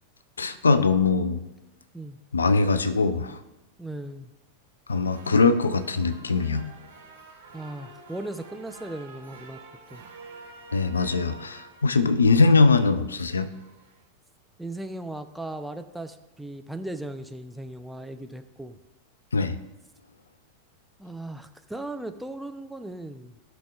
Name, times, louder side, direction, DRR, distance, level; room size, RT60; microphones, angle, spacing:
voice 1, 0.4-1.4 2.3-3.4 4.9-6.7 10.7-13.5 19.3-19.6, left 4 dB, 75° left, 12 dB, 0.5 m, -21 dB
voice 2, 3.8-4.3 7.5-9.6 9.9-10.0 14.6-18.8 21.0-23.4, right 1 dB, 5° right, 7 dB, 0.5 m, -37 dB
sound 1, 4.9-14.1, right 3 dB, 65° right, 1.4 m, -48 dB
15.5 x 6.0 x 2.4 m, 1.0 s
figure-of-eight pair, 90°, 0 cm